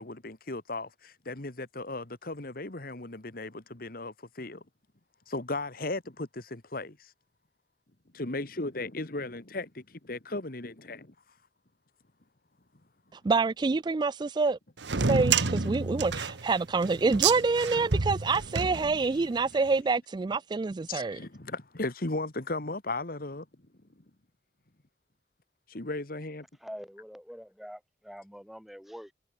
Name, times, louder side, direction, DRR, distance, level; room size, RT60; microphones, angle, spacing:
voice 1, 0.0-4.6 5.3-7.1 8.1-11.1 19.2-19.3 19.5-19.6 20.9-23.5 25.7-26.5, left 2 dB, 55° left, 1.8 m, -36 dB
voice 2, 13.1-14.6 15.0-21.2, right 4 dB, 25° right, 0.3 m, -27 dB
sound 1, 14.8-19.4, right 5 dB, 80° right, 1.2 m, -29 dB
voice 3, 26.6-29.1, equal, ahead, 5.9 m, -45 dB
head